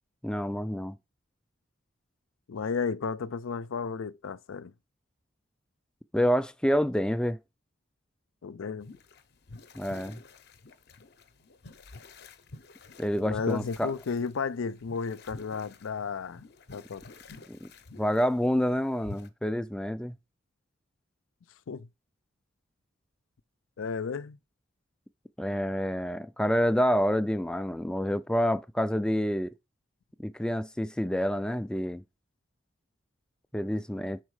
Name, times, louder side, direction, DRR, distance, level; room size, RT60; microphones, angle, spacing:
voice 1, 0.2-1.0 6.1-7.4 9.7-10.2 13.0-13.9 17.5-17.7 18.0-20.2 25.4-29.5 30.2-32.0 33.5-34.2, equal, 5° left, 0.3 m, -28 dB
voice 2, 2.5-4.7 8.4-8.9 13.2-16.4 16.7-17.0 21.7-21.9 23.8-24.4, left 5 dB, 85° left, 0.5 m, -33 dB
sound 1, 8.8-19.3, left 3 dB, 55° left, 0.7 m, -49 dB
6.2 x 4.5 x 4.7 m
head